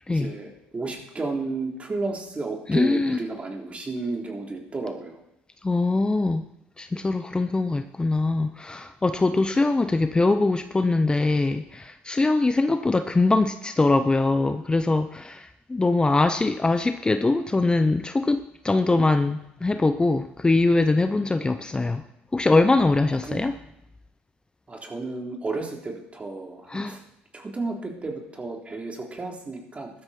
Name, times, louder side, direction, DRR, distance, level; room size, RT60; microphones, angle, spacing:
voice 1, 0.1-5.2 23.2-23.4 24.7-27.0 27.3-29.9, right 3 dB, 25° right, 0 dB, 3.5 m, -32 dB
voice 2, 2.7-3.2 5.6-6.5 6.8-22.0 22.3-23.6 26.7-27.0, left 3 dB, 20° left, 9 dB, 0.7 m, -22 dB
15.0 x 12.5 x 4.4 m, 0.84 s
supercardioid pair, 70°, 5 cm